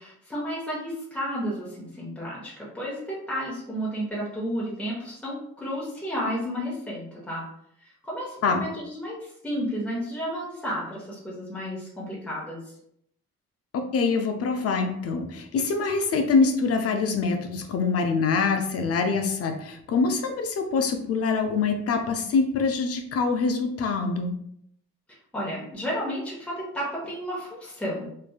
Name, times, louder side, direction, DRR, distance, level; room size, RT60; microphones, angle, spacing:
voice 1, 0.0-7.4 7.8-12.7 25.1-28.1, equal, 5° left, -7 dB, 1.0 m, -32 dB
voice 2, 13.7-24.3, left 4 dB, 50° left, 6 dB, 0.5 m, -25 dB
3.1 x 2.5 x 2.3 m, 0.72 s
cardioid pair, 90°, 30 cm